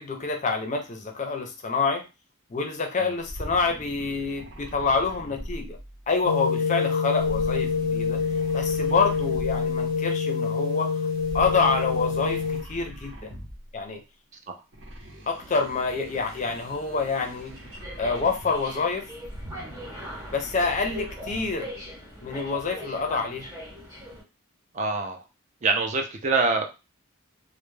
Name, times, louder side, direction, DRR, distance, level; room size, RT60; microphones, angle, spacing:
voice 1, 0.0-2.0 2.5-5.8 6.1-8.2 8.5-10.9 11.3-13.3 13.7-14.0 15.3-17.6 18.0-19.1 20.3-21.7 22.2-23.5, left 4 dB, 35° left, 5 dB, 0.4 m, -27 dB
sound 1, 3.2-6.3 7.2-9.9 11.2-13.8 14.7-18.7 19.1-21.6, right 1 dB, 60° right, 0.8 m, -42 dB
sound 2, 6.2-12.6, left 5 dB, 80° right, 1.1 m, -26 dB
sound 3, 15.4-24.2, left 1 dB, 15° right, 0.8 m, -42 dB
voice 2, 24.7-25.2 25.6-26.9, right 3 dB, 35° right, 4 dB, 0.4 m, -25 dB
2.2 x 2.0 x 3.1 m, 0.28 s
head